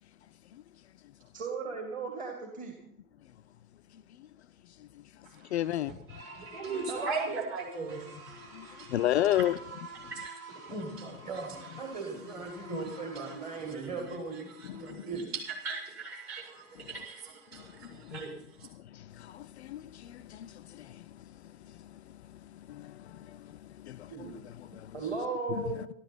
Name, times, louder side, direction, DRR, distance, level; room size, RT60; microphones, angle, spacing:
voice 1, 1.3-2.8 6.9-7.4 10.7-15.2 24.1-25.9, right 4 dB, 20° right, 2.2 m, -37 dB
voice 2, 3.9-4.3 4.6-6.0 8.5-9.6 10.0-10.1 12.6-12.8 14.6-15.0 16.8-16.9 17.5-18.2 18.7-25.0 25.5-25.7, left 13 dB, 50° left, 0.5 m, -35 dB
voice 3, 5.2-5.6 6.3-8.9 9.3-9.4 10.0-10.7 11.3-11.4 12.5-12.6 12.9-13.8 14.5-15.1 15.3-18.7, right 4 dB, 35° right, 5.5 m, -40 dB
sound 1, 6.1-13.7, right 2 dB, 70° right, 3.3 m, -49 dB
13.5 x 12.5 x 6.0 m
figure-of-eight pair, 95°, 43 cm